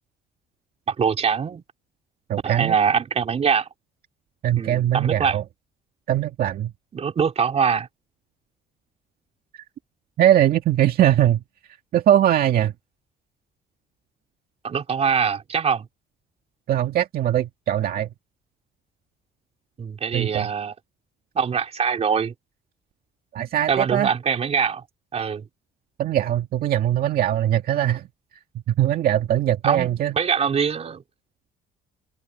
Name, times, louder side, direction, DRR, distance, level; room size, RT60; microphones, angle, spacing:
voice 1, 0.9-1.6 2.4-3.7 4.6-5.4 6.9-7.9 14.6-15.9 19.8-20.7 21.4-22.3 23.7-24.8 25.1-25.5 29.6-31.0, right 6 dB, 40° right, 3.7 m, -23 dB
voice 2, 2.3-2.8 4.4-5.4 6.1-6.7 10.2-11.4 11.9-12.7 16.7-18.1 20.1-20.5 23.3-24.1 26.0-28.1 28.7-30.1, right 11 dB, 60° right, 2.1 m, -21 dB
cardioid pair, 110°, 17 cm